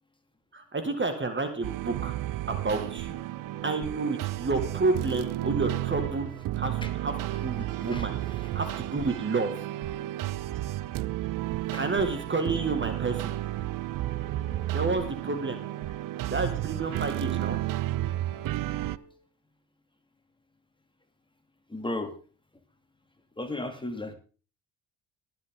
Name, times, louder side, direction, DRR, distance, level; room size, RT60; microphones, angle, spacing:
voice 1, 0.5-2.1 2.5-3.2 3.6-6.3 6.6-8.1 8.5-9.5 11.8-13.3 14.7-15.6 16.3-17.6, right 3 dB, 30° right, 7 dB, 2.0 m, -30 dB
sound 1, 1.5-19.2, right 3 dB, 85° right, 2.5 m, -51 dB
sound 2, 1.6-19.0, right 15 dB, 55° right, 0.6 m, -32 dB
voice 2, 21.7-22.1 23.4-24.1, left 2 dB, 10° left, 6 dB, 2.5 m, -34 dB
21.5 x 7.8 x 3.8 m, 0.37 s
hypercardioid pair, 55°, 40 cm